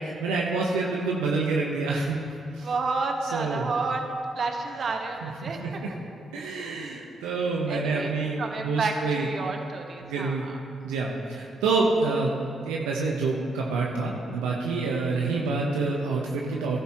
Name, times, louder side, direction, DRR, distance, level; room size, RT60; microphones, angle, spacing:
voice 1, 0.0-2.2 2.5-2.7 3.3-3.7 5.2-5.9 6.3-9.3 10.0-10.5 10.8-12.3 12.6-16.8, right 3 dB, 85° right, -2 dB, 1.0 m, -27 dB
voice 2, 2.6-4.0 4.3-5.6 7.7-8.1 8.4-10.6 15.1-15.5, right 4 dB, 60° right, 3 dB, 1.5 m, -30 dB
16.5 x 11.5 x 3.1 m, 2.4 s
hypercardioid pair, 40°, 0 cm